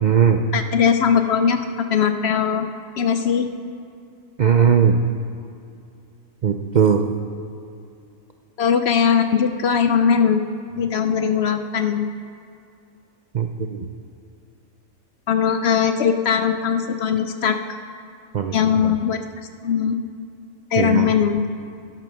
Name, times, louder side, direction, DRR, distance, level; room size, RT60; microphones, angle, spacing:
voice 1, 0.0-0.4 4.4-5.0 6.4-7.0 13.3-13.8 18.3-18.6 18.8-18.9 20.8-21.1, right 7 dB, 70° right, 6 dB, 0.4 m, -18 dB
voice 2, 0.5-3.5 8.6-10.4 10.8-12.1 15.3-17.6 18.5-19.2 19.6-20.1 20.7-21.4, left 7 dB, 60° left, 8 dB, 0.7 m, -20 dB
10.5 x 10.5 x 6.3 m, 2.5 s
omnidirectional pair, 1.5 m